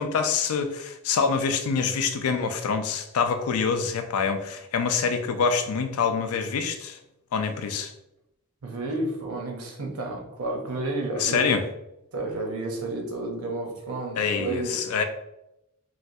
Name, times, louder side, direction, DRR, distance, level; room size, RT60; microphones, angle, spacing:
voice 1, 0.0-7.0 7.3-7.9 11.2-11.6 14.2-15.0, left 5 dB, 85° left, 7 dB, 0.4 m, -26 dB
voice 2, 8.6-11.5 12.1-14.8, right 2 dB, 90° right, 1 dB, 0.7 m, -31 dB
3.1 x 2.3 x 2.6 m, 0.87 s
head